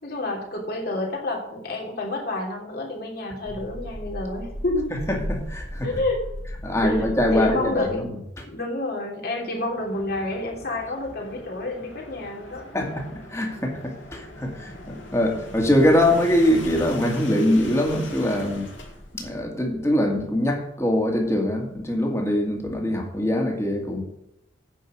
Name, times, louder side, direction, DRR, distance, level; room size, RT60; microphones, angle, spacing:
voice 1, 0.0-4.9 5.8-6.2 6.8-7.0 7.3-8.0 8.5-12.7, left 2 dB, 50° left, 0 dB, 3.1 m, -29 dB
sound 1, 3.4-8.1 9.5-19.4, left 1 dB, 75° left, 2.9 m, -38 dB
voice 2, 5.1-6.0 6.6-8.1 12.7-18.7 19.1-24.0, left 1 dB, 15° left, 1 dB, 2.2 m, -23 dB
9.4 x 6.3 x 7.5 m, 0.82 s
head